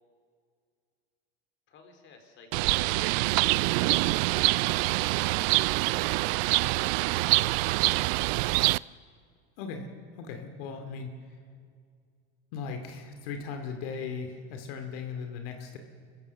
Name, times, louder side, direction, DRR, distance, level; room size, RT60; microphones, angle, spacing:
voice 1, 1.7-3.3 3.8-7.6, left 5 dB, 40° left, 5 dB, 4.1 m, -56 dB
Bird, 2.5-8.8, right 23 dB, 65° right, 0.4 m, -25 dB
voice 2, 9.6-11.2 12.5-15.8, left 5 dB, 70° left, 5 dB, 2.7 m, -38 dB
26.5 x 15.0 x 6.9 m, 2.1 s
supercardioid pair, 125°, 30 cm